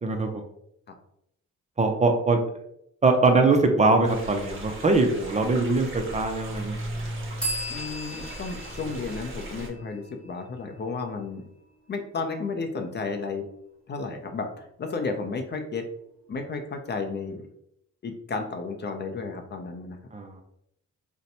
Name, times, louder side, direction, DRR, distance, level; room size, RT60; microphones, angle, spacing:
voice 1, 0.0-0.4 1.8-2.4 3.0-6.8 20.1-20.4, right 3 dB, 25° right, 4 dB, 0.5 m, -22 dB
sound 1, 4.0-9.7, right 1 dB, 40° right, 1.0 m, -37 dB
sound 2, 7.4-11.0, equal, 5° left, 1.0 m, -37 dB
voice 2, 7.7-11.4 11.9-13.4 13.9-15.9 16.3-17.5 18.0-20.0, left 4 dB, 35° left, 5 dB, 0.5 m, -33 dB
2.6 x 2.1 x 4.0 m, 0.73 s
cardioid pair, 90°, 30 cm